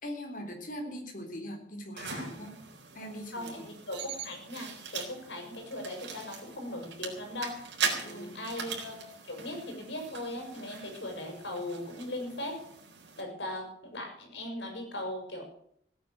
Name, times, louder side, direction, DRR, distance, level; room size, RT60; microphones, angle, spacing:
voice 1, 0.0-2.6 2.9-3.7 8.0-8.5, equal, 50° left, 3 dB, 3.8 m, -41 dB
sound 1, 2.0-13.2, right 5 dB, 85° right, 4.0 m, -40 dB
voice 2, 3.3-7.6 7.9-12.6 13.2-15.4, left 1 dB, 80° left, 3 dB, 5.8 m, -39 dB
16.5 x 9.5 x 7.6 m, 0.68 s
head